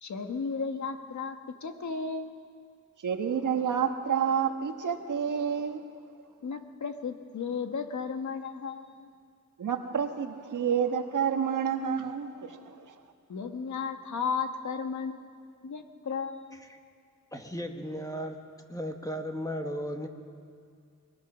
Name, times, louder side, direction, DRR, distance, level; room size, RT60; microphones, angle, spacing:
voice 1, 0.0-2.3 6.4-9.1 13.3-15.3 15.6-16.6, left 5 dB, 65° left, 6 dB, 1.5 m, -34 dB
voice 2, 3.0-6.2 9.6-13.0, right 7 dB, 80° right, 6 dB, 1.5 m, -29 dB
voice 3, 17.3-18.4 18.7-20.1, equal, 10° left, 4 dB, 1.4 m, -35 dB
22.5 x 21.0 x 6.2 m, 2.2 s
wide cardioid pair, 150°, 31 cm